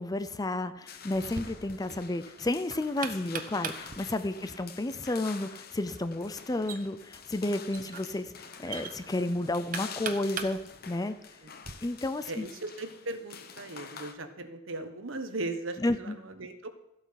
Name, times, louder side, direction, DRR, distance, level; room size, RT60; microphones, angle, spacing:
voice 1, 0.0-10.6 10.9-11.1 11.8-12.5 15.8-16.1, left 2 dB, 20° left, 12 dB, 0.5 m, -32 dB
sound 1, 0.9-14.1, left 6 dB, 50° left, 0.9 m, -47 dB
Knock, 1.1-11.7, right 6 dB, 40° right, 0.9 m, -43 dB
voice 2, 12.3-16.7, right 2 dB, 75° right, 8 dB, 1.3 m, -38 dB
14.0 x 8.2 x 5.8 m, 0.85 s
head